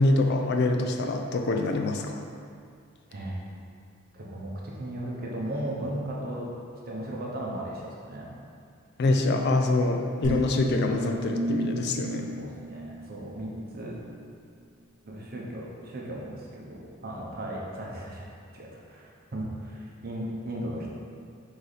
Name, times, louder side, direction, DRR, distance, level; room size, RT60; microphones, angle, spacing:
voice 1, 0.0-2.2 9.0-12.3, left 2 dB, 55° left, 4 dB, 0.4 m, -25 dB
voice 2, 4.1-4.5 4.8-6.5 6.8-8.3 12.4-14.0 15.0-18.3 18.5-20.9, right 1 dB, 50° right, -3 dB, 0.8 m, -36 dB
sound 1, 10.2-13.6, right 1 dB, 25° right, 0.9 m, -33 dB
3.9 x 3.2 x 4.0 m, 2.3 s
head